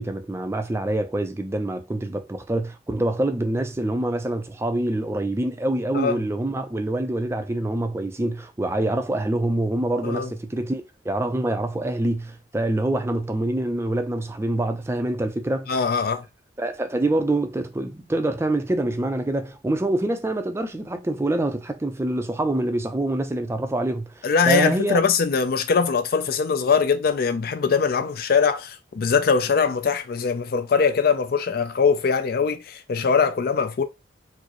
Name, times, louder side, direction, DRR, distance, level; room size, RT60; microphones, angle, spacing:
voice 1, 0.0-15.8 16.6-25.0, right 1 dB, 15° right, 0.4 m, -25 dB
voice 2, 15.7-16.2 24.2-33.8, left 5 dB, 55° left, 0.4 m, -22 dB
4.5 x 2.0 x 2.9 m
head